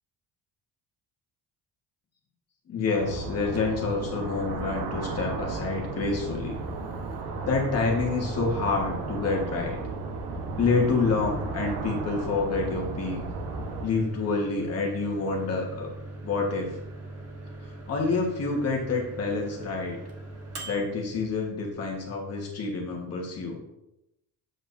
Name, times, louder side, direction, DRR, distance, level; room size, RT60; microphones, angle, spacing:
voice 1, 2.7-6.6 7.4-9.8 10.6-13.2 13.8-15.9 16.2-16.7 17.6-20.0 20.6-23.6, left 4 dB, 35° left, -1 dB, 1.4 m, -28 dB
sound 1, 2.9-13.9, right 3 dB, 65° right, 1.1 m, -35 dB
Microwave oven, 3.4-22.1, right 2 dB, 35° right, 1.2 m, -42 dB
7.8 x 7.3 x 2.6 m, 0.87 s
cardioid pair, 175°, 41 cm